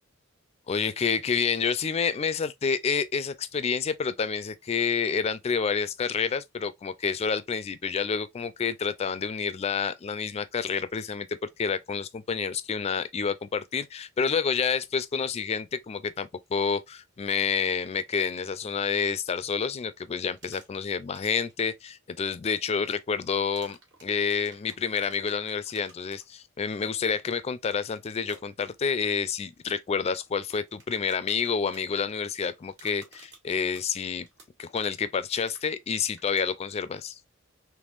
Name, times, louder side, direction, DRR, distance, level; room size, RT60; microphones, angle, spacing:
voice 1, 0.7-34.3 34.6-37.2, left 6 dB, 30° left, 0.3 m, -29 dB
sound 1, 20.4-20.9 21.1-21.5 23.5-26.2 28.2-28.4 30.3-36.5, right 3 dB, 60° right, 1.5 m, -53 dB
3.5 x 3.0 x 2.4 m
head